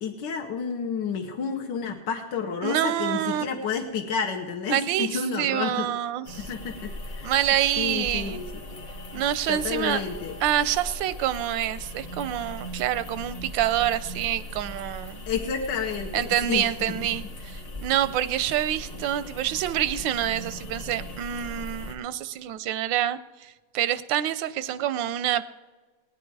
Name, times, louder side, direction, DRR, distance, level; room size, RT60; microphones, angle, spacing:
voice 1, 0.0-5.9 6.4-7.3 7.8-8.5 9.1-9.2 9.5-10.3 15.3-17.0, left 6 dB, 75° left, 2 dB, 1.6 m, -30 dB
voice 2, 2.6-3.4 4.7-6.4 7.2-8.4 9.1-10.0 10.4-15.2 16.1-25.4, right 11 dB, 90° right, 14 dB, 1.3 m, -27 dB
sound 1, 6.2-21.9, left 1 dB, 30° left, 0.8 m, -39 dB
17.0 x 10.0 x 4.6 m, 1.3 s
omnidirectional pair, 2.0 m